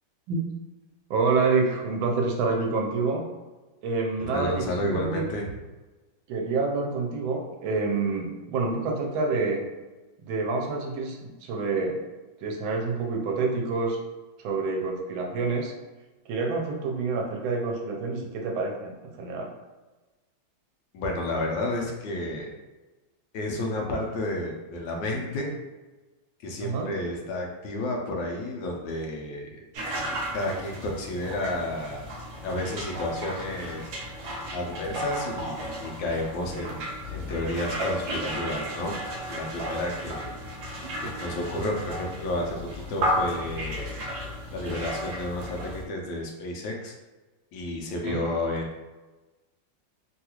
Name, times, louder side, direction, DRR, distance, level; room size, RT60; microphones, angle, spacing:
voice 1, 1.1-3.2 3.8-5.2 6.3-9.6 10.2-12.0 12.4-14.0 14.4-15.7 16.3-19.5 26.6-26.9 48.0-48.2, right 4 dB, 90° right, 2 dB, 1.4 m, -27 dB
voice 2, 4.3-5.5 20.9-22.5 23.3-25.6 26.4-29.5 30.3-32.1 32.4-33.9 34.5-39.0 39.3-40.3 41.0-44.0 44.5-46.9 47.5-48.8, left 1 dB, 75° left, 1 dB, 1.3 m, -31 dB
sound 1, 29.7-45.8, equal, 65° right, 1.2 m, -34 dB
3.6 x 2.3 x 2.9 m, 1.2 s
omnidirectional pair, 2.1 m